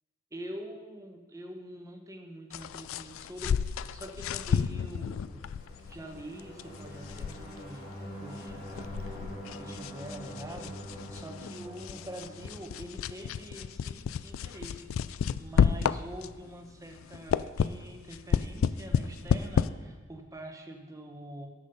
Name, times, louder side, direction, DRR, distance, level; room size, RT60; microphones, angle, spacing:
voice 1, 0.3-5.5 5.9-7.9 8.2-21.5, equal, 15° right, 3 dB, 1.0 m, -45 dB
sound 1, 2.5-16.5 16.9-19.7, left 7 dB, 70° left, 0.3 m, -32 dB
sound 2, 5.1-13.8, equal, 40° left, 3.3 m, -45 dB
10.0 x 7.4 x 5.4 m, 1.3 s
head